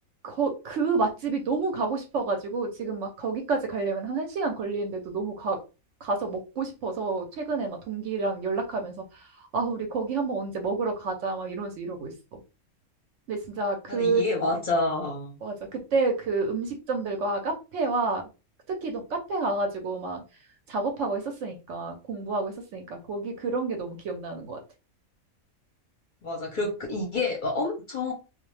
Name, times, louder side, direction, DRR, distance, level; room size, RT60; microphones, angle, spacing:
voice 1, 0.2-5.6 6.0-12.4 13.3-14.2 15.4-18.2 18.7-20.2 20.7-24.6, right 3 dB, 65° right, 4 dB, 0.8 m, -29 dB
voice 2, 13.9-15.3 26.2-28.1, left 2 dB, 45° left, 0 dB, 0.7 m, -28 dB
2.4 x 2.1 x 3.1 m, 0.30 s
omnidirectional pair, 1.5 m